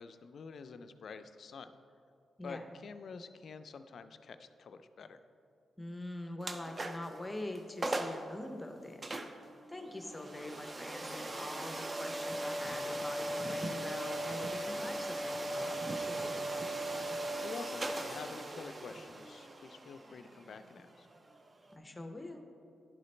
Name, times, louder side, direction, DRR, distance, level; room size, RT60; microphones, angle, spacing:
voice 1, 0.0-1.7 2.4-5.2 17.4-21.1, left 5 dB, 60° left, 10 dB, 0.3 m, -48 dB
voice 2, 5.8-9.2 9.7-16.5 21.7-22.4, left 1 dB, 15° left, 4 dB, 0.6 m, -44 dB
sound 1, 6.4-7.2 7.6-7.7 7.8-8.3 9.0-21.7, right 1 dB, 30° right, 0.4 m, -39 dB
11.0 x 3.9 x 3.2 m, 2.6 s
cardioid pair, 95°, 0 cm